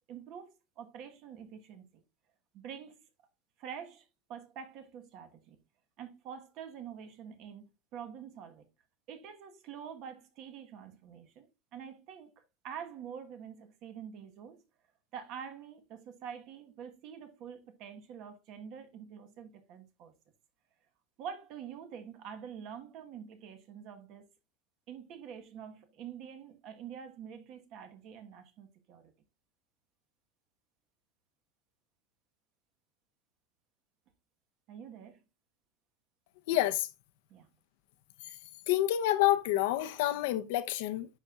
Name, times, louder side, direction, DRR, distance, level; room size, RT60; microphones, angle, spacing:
voice 1, 0.1-2.0 2.5-3.0 3.6-5.6 6.0-8.7 9.1-14.6 15.1-20.1 21.2-24.3 24.9-29.1 34.7-35.2 37.3-37.5, right 8 dB, 40° right, 1.3 m, -46 dB
voice 2, 36.5-36.9 38.7-41.1, left 14 dB, 65° left, 0.8 m, -28 dB
9.9 x 5.9 x 2.4 m
supercardioid pair, 175°, 0 cm